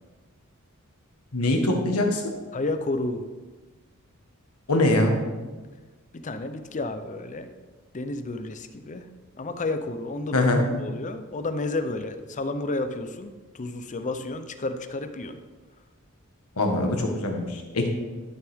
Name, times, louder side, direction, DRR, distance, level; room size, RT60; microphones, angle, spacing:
voice 1, 1.3-2.2 4.7-5.1 10.3-10.6 16.6-17.9, left 2 dB, 85° left, 2 dB, 1.5 m, -22 dB
voice 2, 2.5-3.2 6.1-7.5 7.9-9.1 9.4-10.5 10.8-15.4, left 2 dB, 35° left, 9 dB, 0.6 m, -31 dB
12.0 x 7.0 x 3.6 m, 1.3 s
head